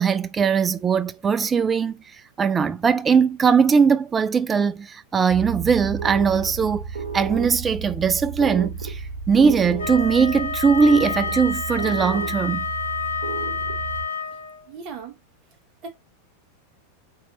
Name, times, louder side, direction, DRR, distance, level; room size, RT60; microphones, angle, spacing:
voice 1, 0.0-2.0 2.4-6.9 7.1-12.7, right 6 dB, 20° right, 0.3 m, -20 dB
sound 1, 5.3-14.1, right 7 dB, 65° right, 0.8 m, -32 dB
Wind instrument woodwind instrument, 9.8-14.7, left 5 dB, 70° left, 0.8 m, -29 dB
voice 2, 14.7-15.2 15.8-15.9, right 5 dB, 35° right, 1.1 m, -36 dB
4.0 x 2.9 x 2.7 m
figure-of-eight pair, 90°, 0 cm